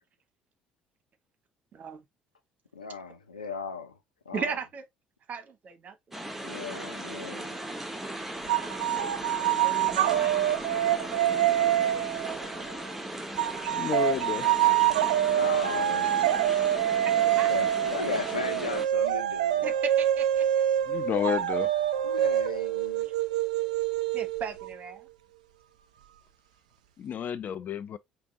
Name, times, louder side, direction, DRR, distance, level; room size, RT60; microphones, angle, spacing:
voice 1, 1.7-2.0 4.3-4.8 5.3-6.2 9.6-12.6 17.0-17.5 19.6-20.7 23.0-23.1 24.1-25.1, right 5 dB, 40° right, 1.0 m, -38 dB
voice 2, 2.7-4.0 4.3-4.5 6.4-7.6 15.3-16.1 16.7-16.8 17.5-19.7 22.0-23.1, left 5 dB, 80° left, 0.7 m, -36 dB
sound 1, 6.1-18.9, right 1 dB, 5° right, 1.1 m, -37 dB
sound 2, 8.5-12.8 13.4-24.7, right 12 dB, 70° right, 0.3 m, -26 dB
voice 3, 13.7-14.5 20.9-21.7 27.0-28.0, left 8 dB, 40° left, 0.5 m, -30 dB
5.1 x 2.8 x 2.8 m
figure-of-eight pair, 55°, 4 cm